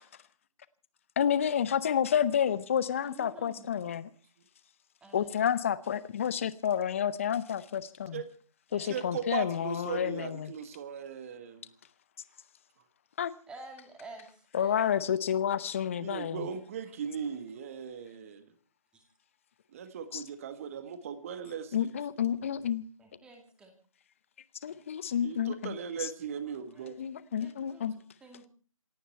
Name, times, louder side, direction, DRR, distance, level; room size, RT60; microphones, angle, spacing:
voice 1, 1.2-4.1 5.1-8.2 8.7-10.5 13.2-13.3 14.5-16.5 20.1-20.2 21.7-22.8 24.6-25.8 27.0-27.9, left 9 dB, 25° left, 17 dB, 0.7 m, -30 dB
voice 2, 3.0-3.9 5.0-5.3 8.7-9.1 13.5-15.1 15.6-15.7 18.9-19.0 23.0-23.7 24.7-25.1 26.7-28.5, right 2 dB, 5° right, 3 dB, 2.4 m, -51 dB
voice 3, 8.8-11.7 16.0-18.5 19.7-21.9 25.2-26.9, right 7 dB, 25° right, 11 dB, 1.6 m, -38 dB
27.5 x 10.0 x 4.4 m, 0.41 s
figure-of-eight pair, 160°, 18 cm